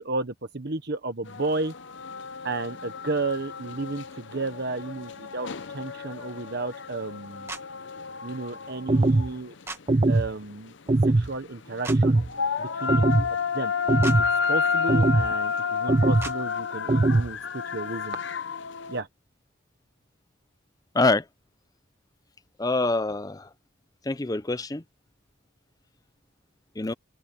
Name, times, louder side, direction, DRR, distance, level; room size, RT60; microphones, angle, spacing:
voice 1, 0.0-1.7 2.4-7.5 8.2-9.5 10.1-10.7 11.0-12.2 12.6-13.3 13.5-13.7 14.1-18.2 18.9-19.1, right 3 dB, 50° right, 1.2 m, -33 dB
sound 1, 1.3-19.0, left 6 dB, 60° left, 0.7 m, -31 dB
sound 2, 7.5-7.6 9.7-9.8 11.8-12.0 14.0-14.2 16.2-16.4, right 2 dB, 10° right, 1.5 m, -36 dB
sound 3, 8.9-9.3 9.9-10.3 10.9-11.3 11.9-12.3 12.9-13.3 13.9-14.3 14.9-15.3 15.9-16.3 16.9-17.3, right 2 dB, 25° right, 0.4 m, -21 dB
voice 2, 22.6-23.4 24.1-24.8 26.8-26.9, left 2 dB, 20° left, 0.6 m, -25 dB
head